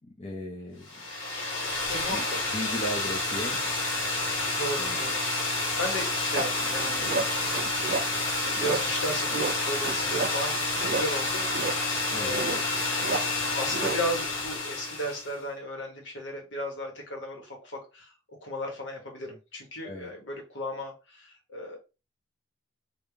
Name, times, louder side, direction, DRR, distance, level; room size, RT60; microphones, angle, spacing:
voice 1, 0.2-0.9 2.1-2.2 2.5-3.7 4.8-5.0 12.1-12.3 19.8-20.1, equal, 30° left, 0.6 m, -36 dB
sound 1, 0.9-15.3, left 2 dB, 90° left, 1.2 m, -29 dB
voice 2, 1.9-2.4 4.6-5.3 5.5-7.7 8.4-10.6 10.9-12.6 13.1-18.1 18.4-21.8, equal, 70° left, 1.4 m, -35 dB
sound 2, 6.3-14.6, right 4 dB, 50° right, 0.4 m, -33 dB
3.5 x 2.5 x 3.4 m
head